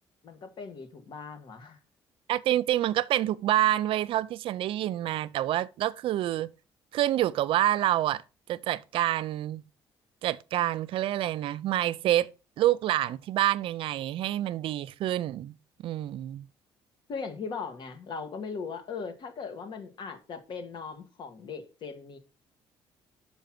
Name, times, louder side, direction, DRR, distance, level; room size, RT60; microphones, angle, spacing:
voice 1, 0.2-1.8 17.1-22.2, left 5 dB, 55° left, 1.8 m, -39 dB
voice 2, 2.3-6.5 6.9-8.2 8.5-9.6 10.2-12.3 12.6-15.5 15.8-16.4, right 13 dB, 70° right, 0.5 m, -27 dB
6.3 x 5.5 x 5.9 m
cardioid pair, 100°, 9 cm